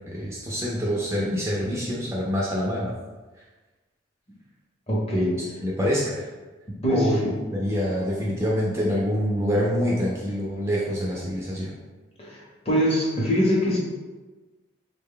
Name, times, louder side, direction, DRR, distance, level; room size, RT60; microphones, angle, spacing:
voice 1, 0.1-2.9 5.3-6.3 6.9-7.2 7.5-11.7, equal, 15° right, -5 dB, 0.4 m, -26 dB
voice 2, 4.9-5.3 6.8-7.3 12.2-13.8, equal, 30° left, -4 dB, 0.8 m, -23 dB
3.6 x 2.2 x 3.7 m, 1.3 s
head